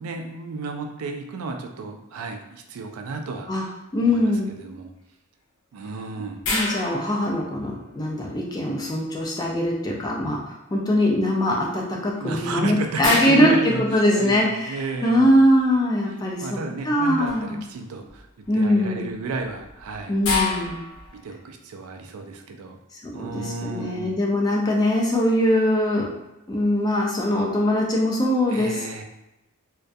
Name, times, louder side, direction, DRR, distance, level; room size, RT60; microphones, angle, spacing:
voice 1, 0.0-3.8 4.0-4.3 4.6-4.9 5.7-6.4 12.2-15.4 16.4-18.3 18.5-20.2 21.2-22.8 23.1-24.2 28.5-29.0, right 3 dB, 80° right, 4 dB, 0.3 m, -32 dB
voice 2, 3.9-4.5 6.5-14.8 15.0-17.6 18.5-19.1 20.1-20.8 23.1-26.1 26.5-28.8, left 1 dB, 20° left, -2 dB, 0.3 m, -22 dB
sound 1, 6.4-8.0 12.2-12.3 13.0-14.6 17.3-17.6 18.1-18.5 19.4-21.3, left 3 dB, 70° left, 0.6 m, -29 dB
2.2 x 2.2 x 2.6 m, 0.91 s
head